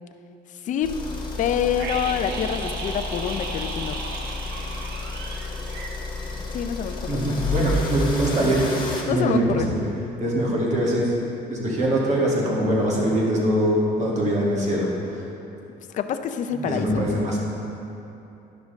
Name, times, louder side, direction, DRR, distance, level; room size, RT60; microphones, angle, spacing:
sound 1, 0.8-9.0, left 2 dB, 25° left, 1.3 m, -31 dB
voice 1, 1.4-4.0 6.5-7.2 9.1-9.7 15.9-16.9, left 8 dB, 50° left, 8 dB, 0.4 m, -26 dB
sound 2, 1.8-6.6 6.8-7.0, right 3 dB, 75° right, 0.9 m, -35 dB
voice 2, 7.1-9.9 10.2-11.1 11.5-15.2 16.5-17.4, right 1 dB, 45° right, -4 dB, 1.9 m, -23 dB
11.0 x 6.0 x 3.2 m, 2.9 s
cardioid pair, 110°, 17 cm